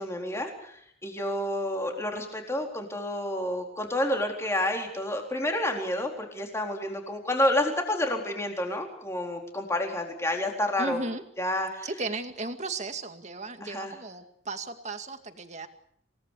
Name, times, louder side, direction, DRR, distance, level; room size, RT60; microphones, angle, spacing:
voice 1, 0.0-11.0 11.4-11.9 13.6-13.9, left 1 dB, 15° left, 2 dB, 4.1 m, -29 dB
voice 2, 10.8-11.2 11.8-15.7, right 3 dB, 35° right, 7 dB, 2.2 m, -35 dB
28.0 x 18.5 x 8.4 m, 0.69 s
head